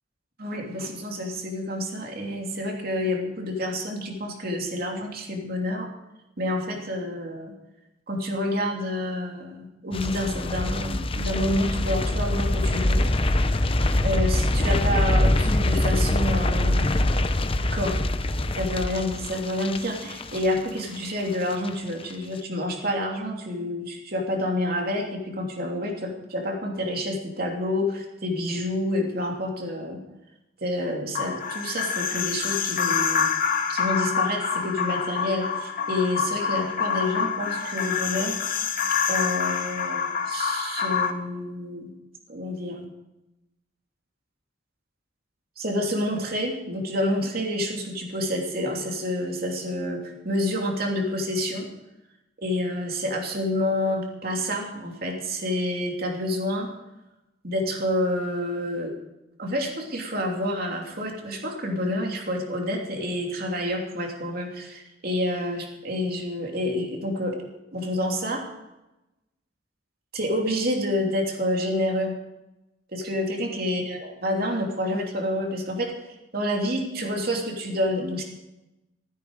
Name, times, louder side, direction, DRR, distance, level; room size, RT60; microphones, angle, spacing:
voice 1, 0.4-5.9 6.4-7.5 8.1-13.1 14.0-17.1 17.7-17.9 18.5-30.0 30.6-33.3 33.7-38.3 39.1-41.9 42.3-42.9 45.6-51.7 52.4-56.7 57.4-58.9 59.4-67.4 67.7-68.4 70.1-72.1 72.9-75.9 76.3-78.2, left 1 dB, 55° right, 1 dB, 3.0 m, -28 dB
sound 1, 9.9-21.1 21.3-21.7 22.0-22.1, left 1 dB, 30° left, 0.8 m, -24 dB
sound 2, 31.1-41.1, left 6 dB, 45° left, 1.2 m, -26 dB
15.5 x 14.5 x 4.9 m, 0.95 s
head